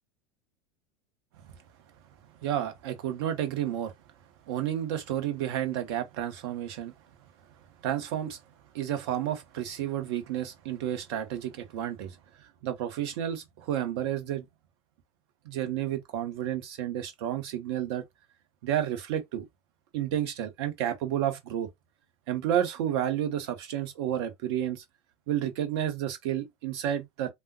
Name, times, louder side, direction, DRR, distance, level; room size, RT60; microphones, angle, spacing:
voice 1, 2.4-3.9 4.5-6.9 7.8-8.4 8.7-14.4 15.4-18.0 18.6-19.4 19.9-21.7 22.3-24.8 25.3-27.3, right 11 dB, 60° right, 0.8 m, -31 dB
3.3 x 2.1 x 2.6 m
hypercardioid pair, 85°, 15 cm